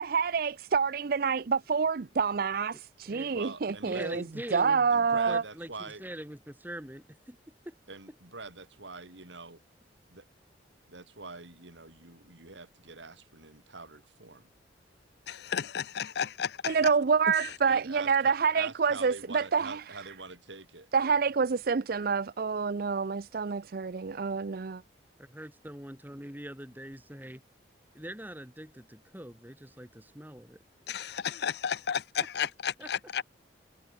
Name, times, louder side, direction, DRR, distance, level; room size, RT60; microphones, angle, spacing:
voice 1, 0.0-4.2 4.5-5.4 16.7-19.8 20.9-24.8, right 5 dB, 55° right, 0.5 m, -27 dB
voice 2, 3.3-4.3 4.9-6.0 7.9-9.6 10.1-10.2 10.9-14.4 17.6-20.9, right 3 dB, 80° right, 4.2 m, -45 dB
voice 3, 3.9-7.4 7.7-7.8 25.2-27.4 27.9-30.6 32.8-32.9, right 1 dB, 10° right, 3.8 m, -43 dB
voice 4, 15.3-16.7 17.4-17.6 30.9-33.2, left 7 dB, 60° left, 0.5 m, -33 dB
head